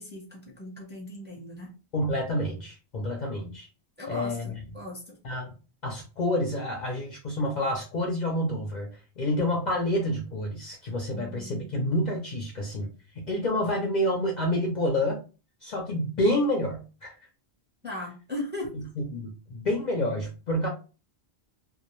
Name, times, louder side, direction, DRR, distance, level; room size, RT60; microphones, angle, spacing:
voice 1, 0.0-1.7 4.0-5.2 11.1-11.7 17.8-18.7, left 1 dB, 10° right, -1 dB, 0.7 m, -38 dB
voice 2, 1.9-3.7 4.1-4.5 5.2-5.5 5.8-8.9 9.2-12.9 13.2-15.2 15.6-17.2 18.7-18.8 19.1-20.7, left 1 dB, 55° left, 0 dB, 0.6 m, -28 dB
2.3 x 2.2 x 3.0 m, 0.34 s
omnidirectional pair, 1.1 m